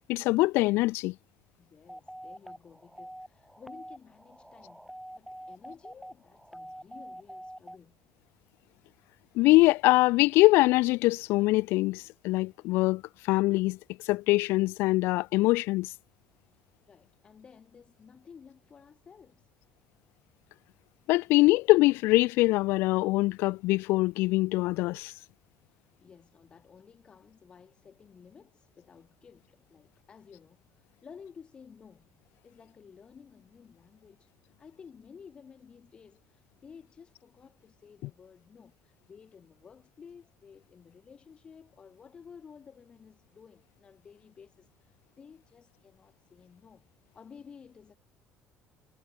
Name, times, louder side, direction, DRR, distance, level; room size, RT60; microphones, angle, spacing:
voice 1, 0.1-1.1 9.4-13.0 13.3-13.8 14.1-15.9 21.1-25.1, left 20 dB, 70° left, 0.5 m, -23 dB
voice 2, 1.6-8.0 16.9-19.5 25.6-32.1 32.4-46.9 47.1-48.0, left 6 dB, 25° left, 5.6 m, -53 dB
sound 1, 1.9-7.8, equal, ahead, 7.0 m, -46 dB
cardioid pair, 175°, 4 cm